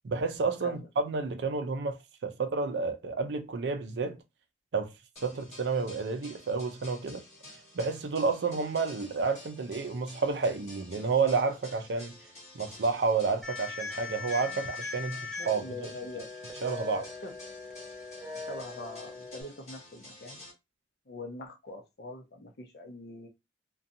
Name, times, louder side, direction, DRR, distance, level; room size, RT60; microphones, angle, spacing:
voice 1, 0.0-4.2 4.7-4.9 5.2-7.2 7.7-12.1 12.5-15.9 16.6-17.1, right 4 dB, 70° right, 0.4 m, -30 dB
sound 1, 5.2-20.5, left 1 dB, 40° left, 1.4 m, -51 dB
sound 2, 13.4-19.4, left 4 dB, 5° left, 0.6 m, -40 dB
voice 2, 14.5-16.3 16.9-17.3 18.2-20.4 21.1-23.3, left 2 dB, 60° left, 0.6 m, -44 dB
2.6 x 2.2 x 2.6 m
head